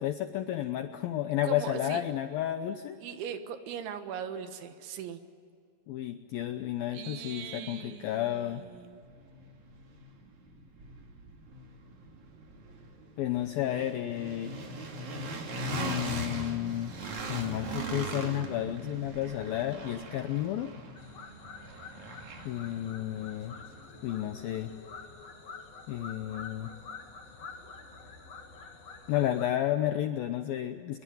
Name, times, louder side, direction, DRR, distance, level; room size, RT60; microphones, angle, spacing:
voice 1, 0.0-3.0 5.9-8.6 13.2-14.6 15.7-17.0 17.3-20.7 22.5-23.6 24.0-24.7 25.9-26.7 29.1-31.0, left 12 dB, 80° left, 8 dB, 2.1 m, -32 dB
voice 2, 1.4-2.0 3.0-5.2 6.9-9.0, right 8 dB, 80° right, 8 dB, 3.9 m, -40 dB
sound 1, 8.7-24.6, right 2 dB, 45° right, 3.6 m, -41 dB
sound 2, 21.0-29.5, left 4 dB, 40° left, 3.3 m, -47 dB
24.0 x 23.0 x 9.3 m, 2.2 s
omnidirectional pair, 5.3 m